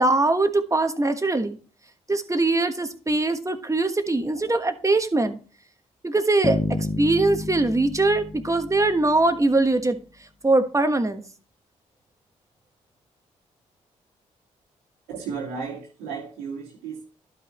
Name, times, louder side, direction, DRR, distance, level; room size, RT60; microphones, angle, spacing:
voice 1, 0.0-1.6 2.1-5.4 6.0-10.0 10.4-11.2, right 2 dB, 20° right, 1.3 m, -22 dB
sound 1, 6.4-9.5, left 2 dB, 25° left, 0.7 m, -30 dB
voice 2, 15.1-17.0, right 5 dB, 85° right, 2.3 m, -34 dB
12.0 x 5.5 x 3.2 m
hypercardioid pair, 40°, 15 cm